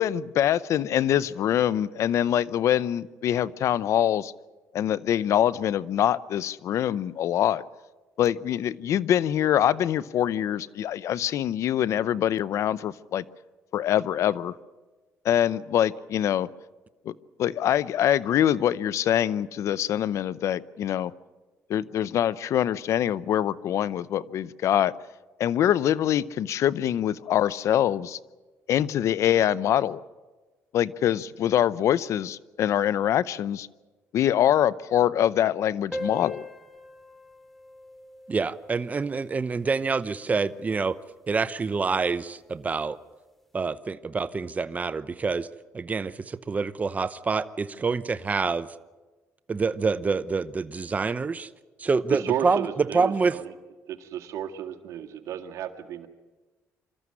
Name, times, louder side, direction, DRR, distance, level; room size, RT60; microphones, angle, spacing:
voice 1, 0.0-4.3 4.7-7.6 8.2-13.2 13.7-14.5 15.2-16.5 17.1-17.2 17.4-21.1 21.7-24.9 25.4-28.2 28.7-30.0 30.7-33.7 34.1-36.4, left 11 dB, 70° left, 19 dB, 0.7 m, -24 dB
sound 1, 35.9-40.9, equal, 5° left, 2.5 m, -42 dB
voice 2, 38.3-40.9 41.3-43.0 43.5-45.5 45.7-48.7 49.5-51.5 51.8-52.7 52.9-53.3, right 4 dB, 30° right, 14 dB, 0.8 m, -27 dB
voice 3, 52.1-53.5 53.9-56.1, right 9 dB, 75° right, 6 dB, 2.0 m, -33 dB
25.5 x 14.0 x 9.7 m, 1.3 s
cardioid pair, 95°, 5 cm